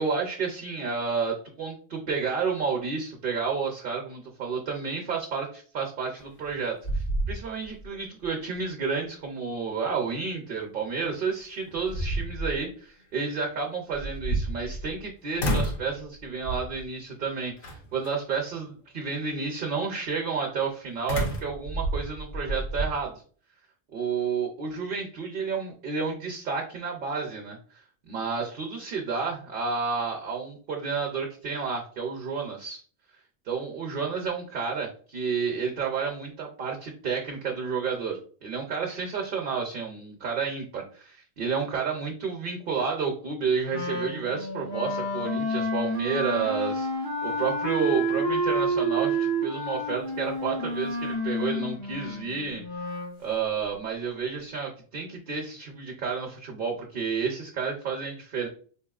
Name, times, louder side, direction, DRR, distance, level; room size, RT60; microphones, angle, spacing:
voice 1, 0.0-23.2 23.9-27.6 28.1-32.8 33.5-52.6 53.2-58.5, right 5 dB, 60° right, 1 dB, 0.8 m, -31 dB
sound 1, 6.2-6.6 6.8-7.9 8.2-8.3 11.0-11.1 11.7-12.6 13.9-15.0 15.4-15.9 16.5-16.8 17.6-18.1 21.1-22.9, right 1 dB, 60° left, 0.9 m, -29 dB
Wind instrument woodwind instrument, 43.7-53.2, right 1 dB, 90° left, 1.4 m, -29 dB
4.3 x 2.9 x 2.3 m, 0.43 s
omnidirectional pair, 1.1 m